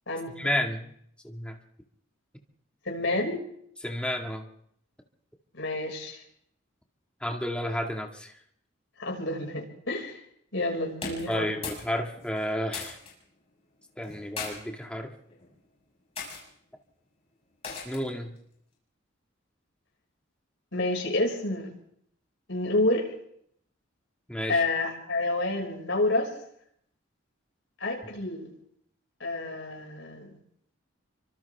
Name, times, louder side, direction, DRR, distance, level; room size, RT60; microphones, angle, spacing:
voice 1, 0.4-0.9 1.2-1.6 3.8-4.5 7.2-8.3 11.3-13.0 14.0-15.2 17.9-18.4 24.3-24.6, equal, 5° left, 2 dB, 2.0 m, -31 dB
voice 2, 2.9-3.4 5.5-6.2 9.0-10.2 10.5-11.5 20.7-21.7 22.5-23.0 24.5-26.3 27.8-28.5 29.2-30.3, left 2 dB, 65° left, 0 dB, 5.9 m, -29 dB
sound 1, 10.9-11.9 12.2-13.1 14.0-14.5 15.3-15.6 16.2-16.4 17.6-18.1, left 4 dB, 30° left, 6.6 m, -37 dB
29.5 x 25.0 x 3.6 m, 0.70 s
head